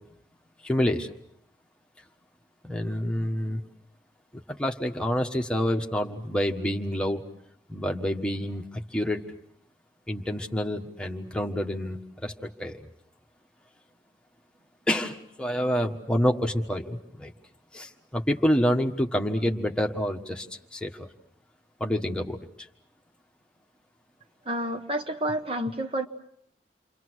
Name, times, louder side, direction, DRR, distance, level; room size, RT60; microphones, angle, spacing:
voice 1, 0.6-1.1 2.6-3.6 4.3-7.2 7.7-9.2 10.1-12.9 14.9-17.3 17.7-20.5 20.7-21.1 21.8-22.4, equal, 5° left, 1 dB, 1.5 m, -28 dB
voice 2, 24.5-26.1, right 1 dB, 30° right, 6 dB, 1.0 m, -29 dB
29.5 x 24.0 x 6.4 m, 0.70 s
head